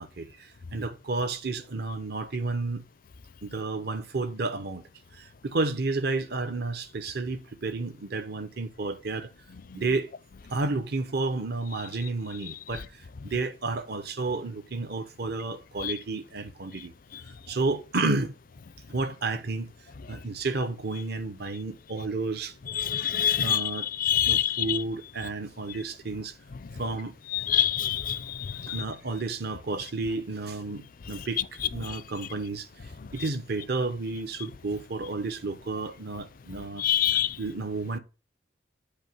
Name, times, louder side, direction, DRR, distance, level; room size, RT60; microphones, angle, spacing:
voice 1, 0.0-2.8 3.4-4.8 5.1-9.3 9.7-10.1 10.5-16.9 17.5-18.3 18.9-19.7 20.1-22.5 23.4-23.9 24.3-26.3 26.8-27.1 28.6-32.7 33.1-36.8 37.4-38.0, right 3 dB, 60° right, 0.9 m, -31 dB
voice 2, 22.8-23.6 24.0-24.8 27.3-28.8 36.8-37.4, left 10 dB, 50° left, 0.4 m, -25 dB
8.1 x 2.8 x 6.0 m
head